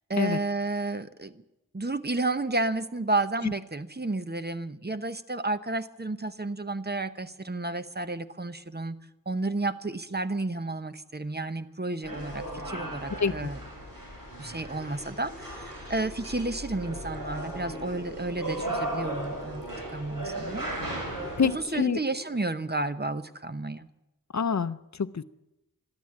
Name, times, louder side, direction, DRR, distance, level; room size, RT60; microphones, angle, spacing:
voice 1, 0.1-1.4 1.7-9.0 9.3-13.6 14.4-19.6 19.9-20.7 21.4-23.9, right 2 dB, 30° right, 11 dB, 0.9 m, -31 dB
sound 1, 12.0-21.6, right 1 dB, 75° right, 7.7 m, -36 dB
Gurgling, 14.6-23.0, left 2 dB, 15° left, 5.8 m, -48 dB
voice 2, 21.4-22.0 24.3-25.2, left 5 dB, 55° left, 14 dB, 0.6 m, -26 dB
13.5 x 12.5 x 8.7 m, 0.94 s
wide cardioid pair, 40°, 34 cm